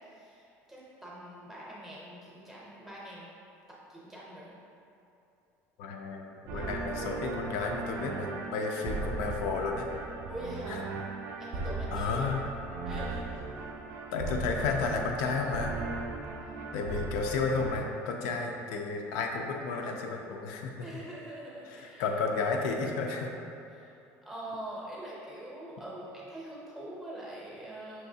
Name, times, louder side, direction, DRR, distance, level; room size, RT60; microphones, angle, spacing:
voice 1, 0.1-3.3 3.7-4.5 6.5-6.8 10.3-10.9 11.4-12.3 12.9-13.2 20.8-22.1 23.7-23.9 24.2-28.1, right 1 dB, 5° right, -7 dB, 0.7 m, -43 dB
voice 2, 5.8-9.9 10.7-10.8 11.9-12.4 14.1-15.8 16.7-20.7 21.8-23.3, left 4 dB, 80° left, 2 dB, 0.4 m, -32 dB
sound 1, 6.5-17.8, right 3 dB, 50° right, 0.4 m, -37 dB
5.7 x 3.1 x 2.7 m, 2.7 s
cardioid pair, 180°, 6 cm